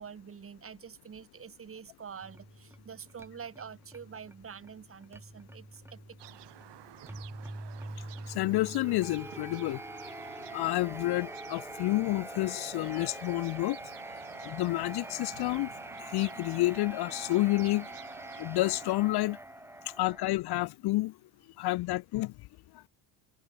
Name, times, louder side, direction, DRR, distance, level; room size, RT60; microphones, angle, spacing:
voice 1, 0.0-6.2 7.0-7.3, right 7 dB, 30° right, 2.4 m, -46 dB
sound 1, 2.2-20.3, right 1 dB, 5° right, 1.9 m, -45 dB
sound 2, 6.2-18.9, right 15 dB, 60° right, 6.5 m, -51 dB
voice 2, 8.3-9.8 10.5-13.8 14.4-15.7 16.1-17.9 18.4-19.4 20.0-21.1 21.6-22.3, left 18 dB, 55° left, 0.7 m, -29 dB
cardioid pair, 125°, 46 cm